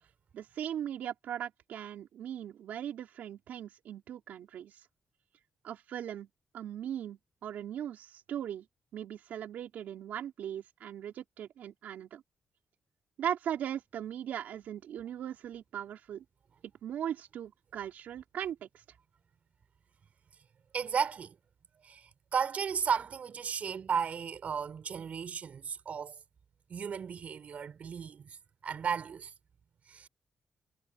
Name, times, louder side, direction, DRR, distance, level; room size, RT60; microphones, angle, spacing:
voice 1, 0.3-4.9 5.6-6.3 6.5-8.6 8.9-12.2 13.2-16.2 16.8-18.8, right 10 dB, 80° right, 4.2 m, -39 dB
voice 2, 20.7-21.4 21.8-26.2 26.7-28.4 28.6-29.3 29.9-30.1, right 7 dB, 60° right, 6.1 m, -34 dB
cardioid pair, 80°, 3 cm